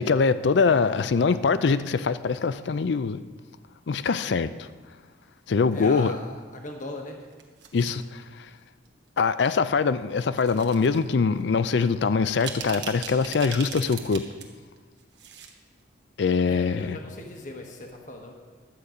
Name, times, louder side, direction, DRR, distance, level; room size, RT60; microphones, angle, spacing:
voice 1, 0.0-3.2 3.9-4.7 5.5-6.1 7.7-8.5 9.2-14.3 16.2-17.0, left 5 dB, 65° left, 14 dB, 0.4 m, -23 dB
voice 2, 5.7-7.2 16.4-18.3, left 2 dB, 40° left, 2 dB, 1.2 m, -38 dB
sound 1, 7.2-8.0 8.8-9.1 10.3-11.0 11.4-11.5 12.1-14.4 14.8-15.5 15.8-15.9, right 7 dB, 65° right, 1.2 m, -39 dB
12.0 x 8.2 x 5.0 m, 1.5 s
head